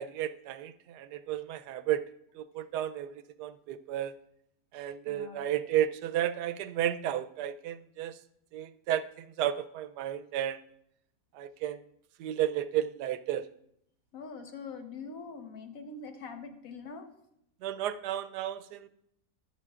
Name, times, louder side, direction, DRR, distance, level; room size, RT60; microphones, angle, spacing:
voice 1, 0.0-2.1 2.3-4.1 4.7-8.2 8.5-10.6 11.3-11.8 12.2-13.5 17.6-18.9, right 11 dB, 80° right, 12 dB, 1.1 m, -33 dB
voice 2, 5.0-5.5 14.1-17.1, left 4 dB, 55° left, 5 dB, 1.5 m, -43 dB
22.5 x 7.8 x 2.4 m, 0.77 s
omnidirectional pair, 1.8 m